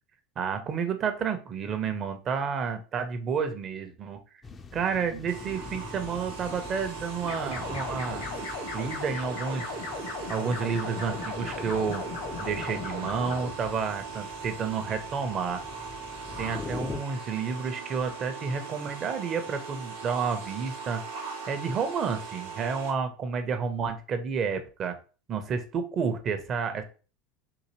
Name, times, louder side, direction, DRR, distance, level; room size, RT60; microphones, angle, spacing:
voice 1, 0.4-4.2 4.7-8.2 8.7-9.8 10.3-12.1 12.4-15.6 16.4-21.0 21.5-25.0 25.3-26.8, right 6 dB, 40° right, 8 dB, 0.7 m, -30 dB
sound 1, 4.4-17.0, left 4 dB, 25° left, 0.4 m, -44 dB
sound 2, 5.3-22.9, right 5 dB, 85° right, 0.9 m, -40 dB
sound 3, 7.2-13.5, left 3 dB, 75° left, 1.1 m, -37 dB
3.8 x 2.7 x 3.0 m, 0.35 s
hypercardioid pair, 80°, 0 cm